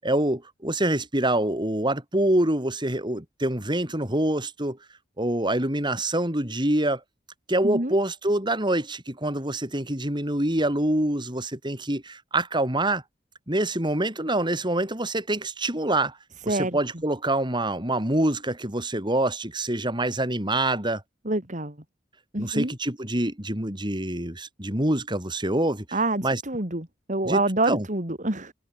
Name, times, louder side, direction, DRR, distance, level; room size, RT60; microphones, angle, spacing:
voice 1, 0.0-4.8 5.2-7.0 7.5-13.0 13.5-16.2 16.4-21.0 22.4-26.4 27.2-27.8, right 1 dB, 25° right, 6.6 m, -26 dB
voice 2, 7.6-8.0 16.5-16.8 21.3-21.8 22.3-22.7 25.9-28.5, right 2 dB, 45° right, 3.7 m, -26 dB
head